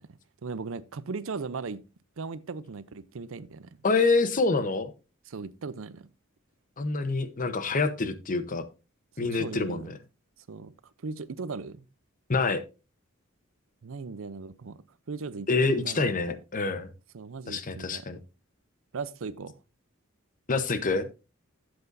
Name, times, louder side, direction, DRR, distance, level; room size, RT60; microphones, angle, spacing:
voice 1, 0.4-1.8 2.2-3.8 5.3-6.1 9.4-9.9 10.5-10.7 11.0-11.8 13.8-16.1 17.1-18.1 18.9-19.5, right 4 dB, 70° right, 0.6 m, -38 dB
voice 2, 3.8-4.9 6.8-8.6 9.2-10.0 12.3-12.6 15.5-16.9 17.5-18.2 20.5-21.1, left 3 dB, 40° left, 0.9 m, -26 dB
12.0 x 7.8 x 2.6 m
head